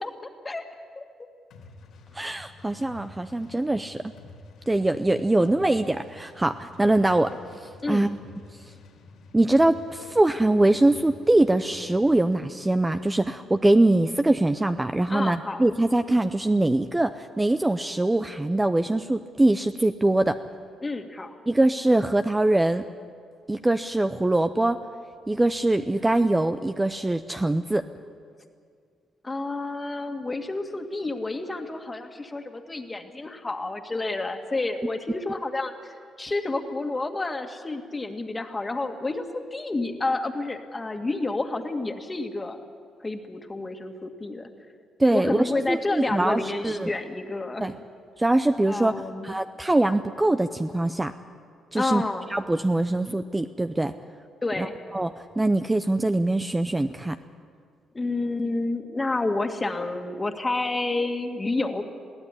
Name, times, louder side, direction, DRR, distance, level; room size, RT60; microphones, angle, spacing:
voice 1, 0.0-0.6 1.0-1.1 7.8-8.1 15.1-15.7 20.8-21.3 29.2-42.6 43.0-44.5 45.1-47.6 48.7-49.4 51.7-52.3 54.4-54.7 57.9-61.8, left 2 dB, 20° left, 5 dB, 2.0 m, -30 dB
sound 1, 1.5-12.2, left 3 dB, 75° left, 3.1 m, -49 dB
voice 2, 2.1-4.0 4.7-8.2 9.3-20.4 21.5-22.8 23.5-24.8 25.3-27.9 45.0-46.9 47.6-47.8 48.2-51.1 51.7-52.0 52.3-53.9 54.6-57.2, right 2 dB, 15° right, 9 dB, 0.6 m, -23 dB
21.5 x 15.5 x 9.9 m, 2.1 s
cardioid pair, 90°, 0 cm